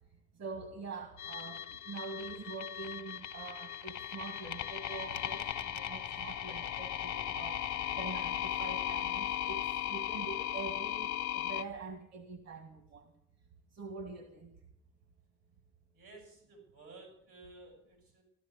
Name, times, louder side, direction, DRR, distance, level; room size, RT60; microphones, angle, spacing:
voice 1, 0.4-9.6 9.9-13.1 13.7-14.5, right 4 dB, 60° right, 5 dB, 2.0 m, -45 dB
sound 1, 1.2-11.6, left 11 dB, 75° left, 0.8 m, -37 dB
voice 2, 15.9-18.2, right 2 dB, 85° right, 2 dB, 7.8 m, -54 dB
14.5 x 13.5 x 6.8 m, 0.78 s
cardioid pair, 90°, 30 cm